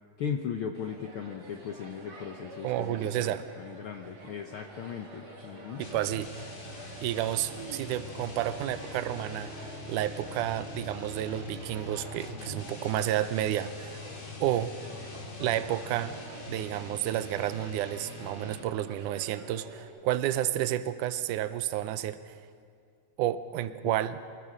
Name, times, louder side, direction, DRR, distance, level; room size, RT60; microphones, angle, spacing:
voice 1, 0.2-5.9 23.9-24.0, left 7 dB, 80° left, 4 dB, 1.2 m, -37 dB
sound 1, 0.7-19.8, right 2 dB, 60° right, 3.9 m, -48 dB
sound 2, 1.6-16.2, left 10 dB, 65° left, 1.5 m, -50 dB
voice 2, 2.6-3.4 5.8-6.3 7.0-9.5 9.9-14.1 14.4-14.7 15.4-16.1 16.5-22.3 23.2-24.2, right 12 dB, 80° right, 12 dB, 2.2 m, -31 dB
sound 3, 5.8-18.9, left 1 dB, 40° left, 2.7 m, -45 dB
24.5 x 21.0 x 6.5 m, 2.1 s
omnidirectional pair, 3.6 m